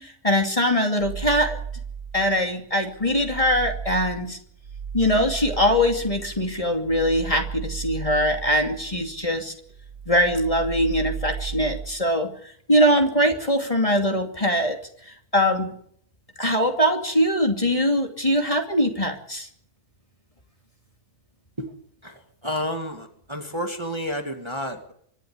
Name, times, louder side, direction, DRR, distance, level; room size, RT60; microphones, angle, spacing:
voice 1, 0.0-1.6 2.1-4.4 4.9-9.5 10.1-12.3 12.7-14.8 15.1-15.7 16.4-19.5, equal, 20° left, 3 dB, 2.7 m, -22 dB
sound 1, 1.0-2.4 2.8-9.4 9.7-12.0, right 6 dB, 55° right, 2.9 m, -35 dB
voice 2, 22.0-24.9, equal, 15° right, 4 dB, 2.2 m, -30 dB
25.5 x 12.5 x 9.8 m, 0.65 s
omnidirectional pair, 1.6 m